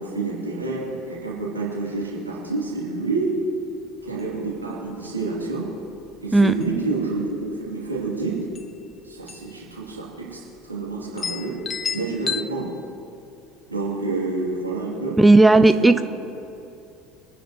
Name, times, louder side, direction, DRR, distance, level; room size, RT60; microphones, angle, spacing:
voice 1, 0.0-3.4 4.0-5.7 6.2-8.4 9.0-11.6 11.9-12.7 13.7-15.2 15.5-16.0, right 3 dB, 85° right, -5 dB, 3.0 m, -28 dB
sound 1, 4.1-4.2 4.5-4.6 5.0-5.4 6.0-6.2 6.5-7.1 8.2-8.3 8.6-8.7 9.3-9.6 9.9-10.0 10.6-10.7 11.2-12.4, left 6 dB, 30° left, 0.7 m, -31 dB
voice 2, 15.2-16.0, right 2 dB, 10° right, 11 dB, 0.5 m, -13 dB
24.5 x 10.0 x 3.1 m, 2.6 s
figure-of-eight pair, 70°, 0 cm